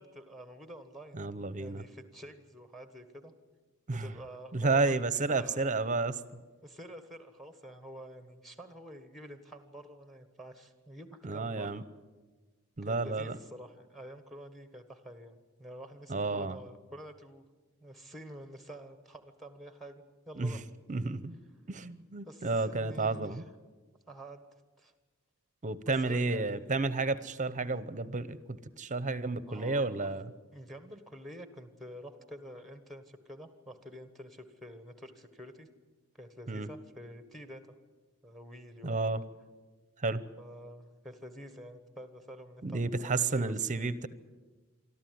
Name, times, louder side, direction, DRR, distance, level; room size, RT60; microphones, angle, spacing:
voice 1, 0.0-1.2 1.6-3.3 3.9-5.7 6.6-11.8 12.8-17.5 17.8-20.6 22.3-23.4 24.1-24.4 24.8-24.9 25.8-26.8 27.6-27.8 29.5-30.2 30.5-35.7 36.1-37.7 38.2-39.2 40.4-43.9, equal, ahead, 9 dB, 1.4 m, -48 dB
voice 2, 1.1-1.8 3.9-4.1 4.5-6.2 11.2-11.8 12.8-13.4 16.1-16.6 20.4-20.6 20.9-21.4 21.7-23.4 25.6-30.3 36.5-36.7 38.8-39.2 40.0-40.2 42.6-44.1, right 3 dB, 35° right, 15 dB, 0.8 m, -31 dB
24.5 x 13.5 x 9.4 m, 1.3 s
head